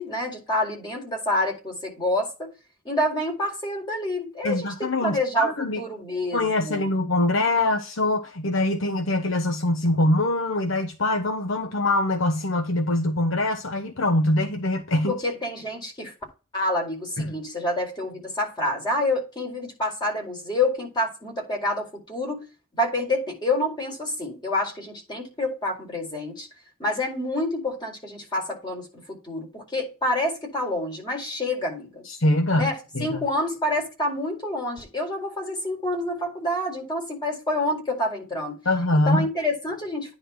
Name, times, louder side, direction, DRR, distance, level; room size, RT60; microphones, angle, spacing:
voice 1, 0.0-2.5 2.8-6.9 15.1-16.1 16.5-22.4 22.7-26.5 26.8-32.0 32.5-38.6 38.9-40.1, left 1 dB, 20° left, 4.5 m, -28 dB
voice 2, 4.4-5.8 6.3-15.1 17.2-17.3 32.0-33.3 38.6-39.3, left 1 dB, 70° left, 1.1 m, -23 dB
10.0 x 4.1 x 4.6 m
head